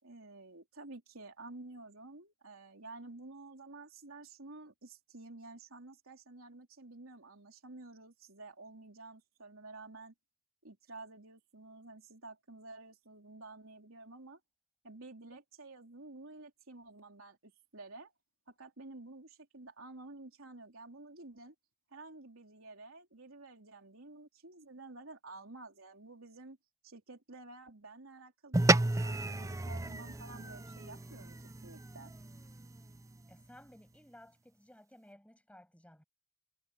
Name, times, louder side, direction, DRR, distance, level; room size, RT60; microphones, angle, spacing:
voice 1, 0.0-10.1 10.6-14.4 14.8-18.1 18.5-21.5 21.9-26.6 26.8-32.1, right 2 dB, 75° right, 3.8 m, -51 dB
sound 1, 28.5-33.2, right 2 dB, 15° right, 0.5 m, -33 dB
voice 2, 33.3-36.0, left 1 dB, 5° left, 7.5 m, -57 dB
head